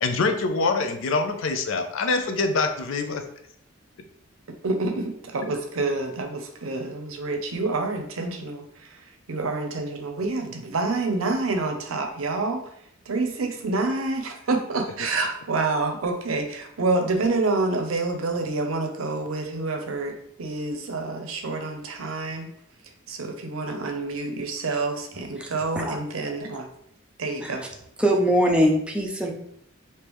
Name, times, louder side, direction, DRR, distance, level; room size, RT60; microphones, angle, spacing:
voice 1, 0.0-3.2, left 3 dB, 70° left, 6 dB, 0.5 m, -24 dB
voice 2, 4.6-12.7 13.1-22.5 23.1-26.7 27.2-27.6, right 3 dB, 85° right, 4 dB, 0.6 m, -28 dB
voice 3, 28.0-29.3, equal, 5° right, 0 dB, 0.5 m, -22 dB
3.5 x 2.8 x 3.0 m, 0.69 s
head